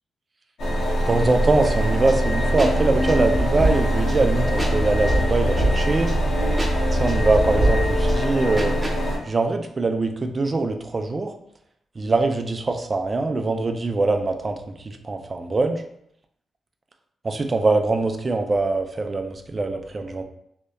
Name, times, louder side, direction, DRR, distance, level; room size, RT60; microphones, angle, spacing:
sound 1, 0.6-9.2, equal, 80° left, 0.6 m, -22 dB
voice 1, 1.1-6.1 6.9-8.8 9.3-11.3 12.0-15.8 17.2-20.2, right 3 dB, 40° right, 6 dB, 0.3 m, -23 dB
sound 2, 1.7-9.0, right 2 dB, 15° right, 0.8 m, -30 dB
2.7 x 2.1 x 2.2 m, 0.72 s
cardioid pair, 60°, 0 cm